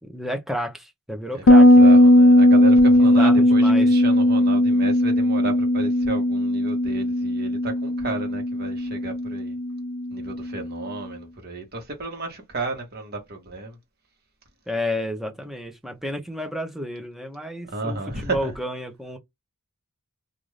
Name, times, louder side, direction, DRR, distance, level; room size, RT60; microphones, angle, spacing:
voice 1, 0.1-2.0 2.9-3.9 14.7-19.2, left 1 dB, ahead, 0.6 m, -31 dB
voice 2, 1.3-9.6 10.1-13.8 17.6-18.5, right 3 dB, 45° right, 1.2 m, -33 dB
Bass guitar, 1.5-10.8, left 1 dB, 85° left, 0.5 m, -17 dB
2.6 x 2.4 x 3.1 m
head